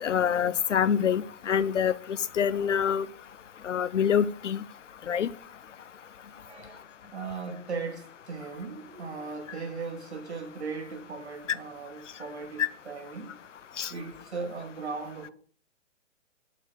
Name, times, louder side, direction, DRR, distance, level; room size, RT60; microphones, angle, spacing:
voice 1, 0.0-1.9 2.4-3.1 3.6-4.6 5.1-5.3 12.6-12.7 13.8-13.9, left 8 dB, 70° left, 0.8 m, -25 dB
voice 2, 6.4-6.8 7.1-13.4 13.9-15.3, right 4 dB, 60° right, 2.5 m, -38 dB
8.0 x 7.3 x 6.5 m
hypercardioid pair, 175°, 38 cm